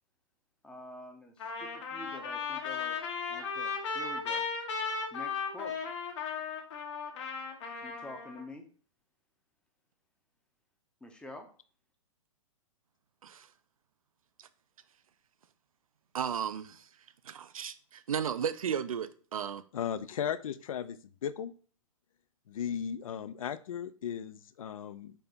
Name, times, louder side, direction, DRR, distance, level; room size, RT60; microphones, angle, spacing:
voice 1, 0.6-3.0 3.3-4.4 5.1-5.7 7.8-8.6 11.0-11.5, left 2 dB, 5° left, 0.6 m, -47 dB
Trumpet, 1.4-8.4, left 5 dB, 60° left, 1.2 m, -36 dB
voice 2, 16.1-16.8 17.2-19.6, right 8 dB, 85° right, 0.4 m, -34 dB
voice 3, 19.7-21.5 22.5-25.1, left 8 dB, 75° left, 0.4 m, -36 dB
4.1 x 2.9 x 3.4 m
hypercardioid pair, 125°, 17 cm